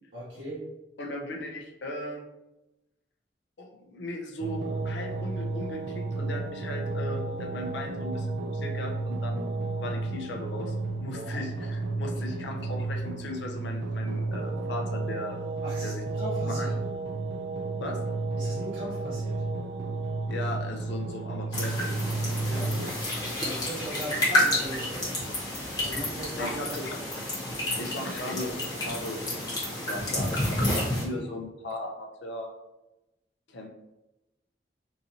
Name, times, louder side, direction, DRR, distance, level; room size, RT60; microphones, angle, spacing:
voice 1, 0.1-0.7 11.1-11.4 12.0-12.4 15.6-16.7 18.4-19.4 21.5-21.6 22.4-26.8 27.7-27.9 28.8-29.0 31.2-31.3, right 1 dB, 85° right, -8 dB, 1.1 m, -39 dB
voice 2, 1.0-2.2 3.6-8.3 8.5-10.7 11.0-15.4 15.8-16.0 16.5-16.7 17.8-18.0 20.3-22.0 26.4-27.0 27.8-28.5 28.8-29.5 29.7-32.5 33.5-33.7, left 1 dB, 70° left, 1 dB, 0.6 m, -37 dB
sound 1, 4.4-22.9, right 3 dB, 65° right, 0.3 m, -32 dB
sound 2, 21.5-31.0, left 1 dB, 20° left, 1.1 m, -30 dB
3.9 x 2.6 x 2.8 m, 0.95 s
head